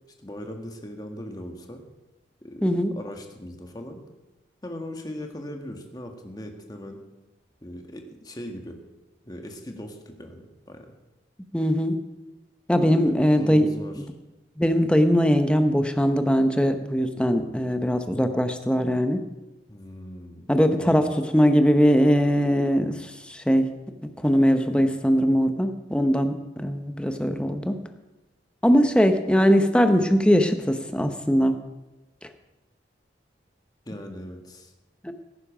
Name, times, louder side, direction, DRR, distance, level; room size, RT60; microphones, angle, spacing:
voice 1, 0.2-1.8 2.4-2.6 2.9-4.0 4.6-7.0 7.6-8.8 9.2-10.9 12.8-14.0 19.7-21.0 33.9-34.7, left 1 dB, 20° left, 4 dB, 1.6 m, -39 dB
voice 2, 2.6-2.9 11.5-12.0 12.7-13.7 14.6-19.2 20.5-23.7 24.2-27.7 28.6-31.6 32.2-32.3 35.0-35.1, equal, 5° left, 8 dB, 0.8 m, -21 dB
17.5 x 9.8 x 5.0 m, 1.1 s
head